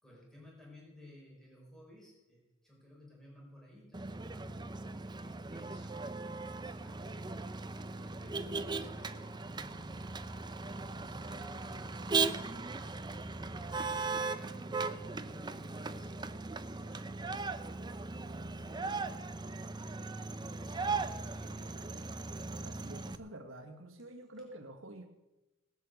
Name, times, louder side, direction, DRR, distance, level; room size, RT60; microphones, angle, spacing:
voice 1, 0.0-7.0 7.5-17.7 18.1-20.8 21.1-22.2, equal, ahead, -4 dB, 4.9 m, -57 dB
Motor vehicle (road), 3.9-23.2, right 3 dB, 20° right, 0.7 m, -38 dB
voice 2, 22.6-25.1, right 1 dB, 75° right, 2 dB, 1.9 m, -48 dB
19.0 x 8.3 x 7.9 m, 1.0 s
head